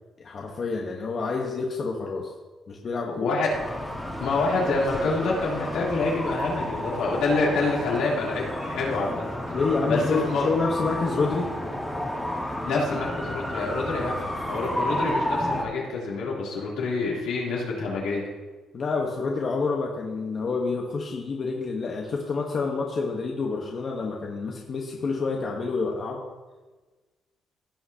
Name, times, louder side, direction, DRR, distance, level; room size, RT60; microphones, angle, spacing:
voice 1, 0.2-2.3 2.7-3.2 9.5-11.5 18.7-26.2, left 4 dB, 50° left, -1 dB, 1.2 m, -28 dB
voice 2, 3.2-3.5 4.2-9.2 9.9-10.5 12.6-18.3, left 3 dB, 85° left, -5 dB, 3.2 m, -27 dB
sound 1, 3.5-15.6, left 1 dB, 5° left, 1.6 m, -31 dB
16.5 x 5.7 x 2.9 m, 1.2 s
cardioid pair, 90°, 0 cm